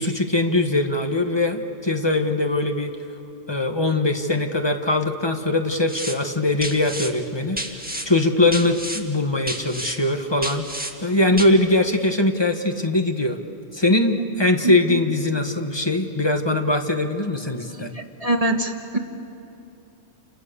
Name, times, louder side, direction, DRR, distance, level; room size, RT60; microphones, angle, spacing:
voice 1, 0.0-2.9 3.5-7.6 8.0-10.6 11.0-13.4 13.7-17.9, left 2 dB, 20° left, 5 dB, 1.4 m, -21 dB
sound 1, 5.9-6.2 6.6-7.1 7.6-8.1 8.5-9.0 9.5-10.0 10.4-10.9 11.4-11.5, right 1 dB, 5° right, 1.7 m, -30 dB
voice 2, 14.6-15.0 17.9-19.0, right 2 dB, 30° right, 3 dB, 1.7 m, -24 dB
29.0 x 29.0 x 6.9 m, 2.7 s
omnidirectional pair, 1.3 m